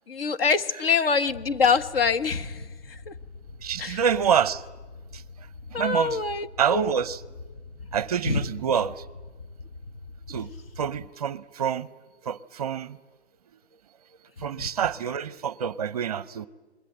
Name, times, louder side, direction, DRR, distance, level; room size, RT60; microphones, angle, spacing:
voice 1, 0.1-3.1 3.8-4.0 5.7-6.9 8.2-8.4 14.6-14.7, left 5 dB, 55° left, 1.5 m, -25 dB
sound 1, 1.3-11.1, left 3 dB, 80° left, 2.3 m, -44 dB
voice 2, 3.6-4.6 5.1-5.2 5.7-6.2 6.6-7.2 7.9-9.0 10.3-10.5 10.8-11.9 12.2-13.0 14.4-16.5, right 8 dB, 35° right, 0.7 m, -27 dB
27.0 x 21.5 x 8.0 m
hypercardioid pair, 170°, 34 cm